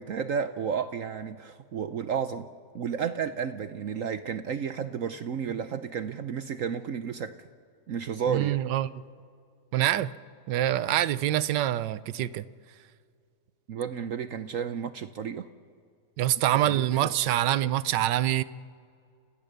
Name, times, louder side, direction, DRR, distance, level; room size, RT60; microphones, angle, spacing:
voice 1, 0.0-2.5 2.7-7.3 7.9-8.6 13.7-15.5 16.7-17.1, right 7 dB, 60° right, 1.0 m, -32 dB
voice 2, 8.3-8.9 9.7-10.1 10.5-12.4 16.2-18.4, right 12 dB, 85° right, 1.4 m, -25 dB
29.5 x 17.0 x 6.8 m
omnidirectional pair, 1.8 m